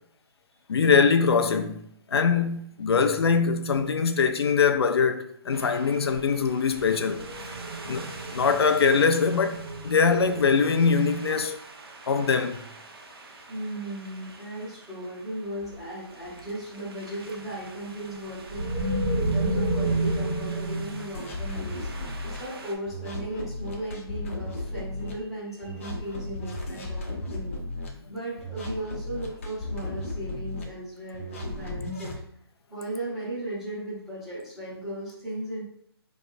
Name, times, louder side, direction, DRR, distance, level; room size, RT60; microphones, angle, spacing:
voice 1, 0.7-7.3 7.9-11.6 12.1-12.7, left 5 dB, 70° left, 0.4 m, -23 dB
sound 1, 5.5-14.6 15.6-15.8 16.1-22.7, right 2 dB, 65° right, 1.0 m, -33 dB
voice 2, 13.5-27.6 28.1-32.1 32.7-35.6, right 1 dB, ahead, 0.7 m, -36 dB
sound 2, 21.1-22.4 22.9-25.1 25.6-27.9 28.4-30.6 31.1-32.2, left 1 dB, 30° left, 0.6 m, -35 dB
4.3 x 3.1 x 2.6 m
hypercardioid pair, 175°, 14 cm